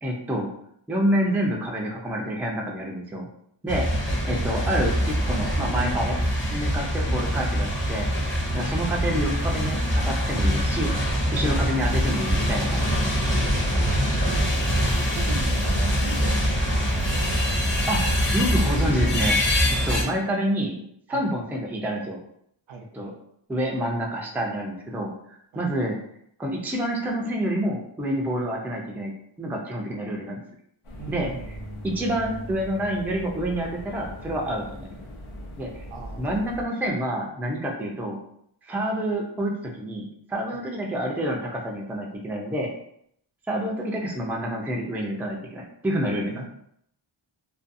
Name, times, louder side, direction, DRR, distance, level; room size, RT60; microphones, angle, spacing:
voice 1, 0.0-0.5 0.9-3.3 3.6-3.9 4.3-6.2 6.5-8.1 8.5-9.8 10.0-10.9 11.3-12.8 17.9-18.0 18.3-19.4 19.9-20.7 21.1-22.2 22.9-23.1 23.5-26.0 26.4-29.1 29.4-30.4 31.1-31.3 31.8-35.0 35.6-35.8 36.2-38.2 38.7-42.7 43.5-46.4, right 1 dB, 5° right, -1 dB, 0.3 m, -28 dB
sound 1, 3.7-20.0, equal, 25° left, 0.7 m, -24 dB
voice 2, 3.7-4.0 6.8-6.9 11.4-11.5 13.9-14.5 14.8-17.4 20.0-20.2 21.1-21.2 22.7-22.8 25.5-25.6 31.0-31.5 35.9-36.4 40.5-40.6 46.3-46.5, right 5 dB, 70° right, 2 dB, 0.6 m, -40 dB
sound 2, 30.8-36.6, equal, 90° left, 0.7 m, -39 dB
2.6 x 2.3 x 2.5 m, 0.70 s
wide cardioid pair, 105°, 49 cm